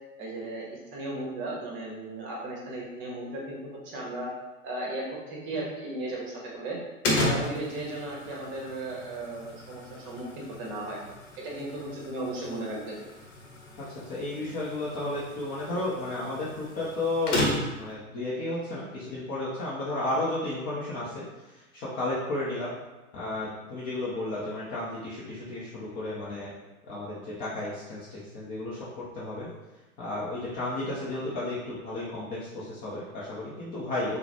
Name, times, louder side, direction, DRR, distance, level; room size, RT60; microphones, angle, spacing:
voice 1, 0.2-0.7 0.9-4.3 4.6-6.8 7.1-11.0 11.4-13.0, right 2 dB, 30° right, -3 dB, 0.8 m, -36 dB
sound 1, 7.0-17.9, left 1 dB, 55° left, 0.9 m, -34 dB
voice 2, 14.1-17.5 17.8-21.2 21.9-22.7 23.1-26.5 26.9-29.5 30.0-34.2, left 2 dB, 20° left, -7 dB, 0.5 m, -33 dB
3.7 x 2.1 x 2.8 m, 1.1 s
figure-of-eight pair, 95°, 43 cm